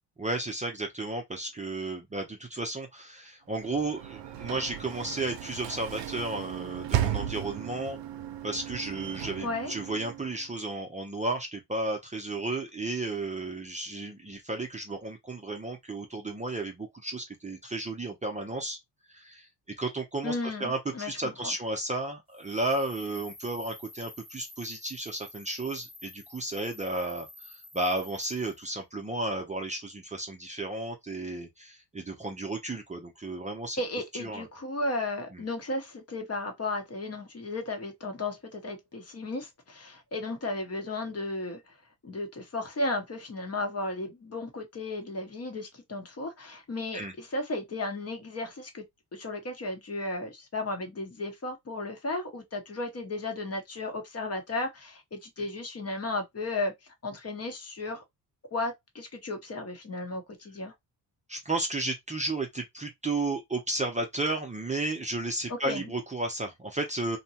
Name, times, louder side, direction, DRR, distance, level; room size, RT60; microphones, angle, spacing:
voice 1, 0.2-8.0 8.4-18.8 19.1-19.5 19.8-20.3 20.6-33.8 34.2-34.5 35.3-35.4 46.9-47.1 61.3-67.2, right 2 dB, 15° right, 0.6 m, -33 dB
Sliding door / Slam, 3.5-10.5, right 11 dB, 80° right, 0.6 m, -35 dB
voice 2, 9.4-9.7 20.2-21.5 33.8-41.7 42.0-48.8 49.1-56.7 57.0-58.0 58.5-60.7 65.5-65.9, left 2 dB, 35° left, 0.9 m, -34 dB
sound 1, 22.3-28.6, left 2 dB, 10° left, 1.1 m, -50 dB
2.8 x 2.2 x 2.7 m
cardioid pair, 90°, 42 cm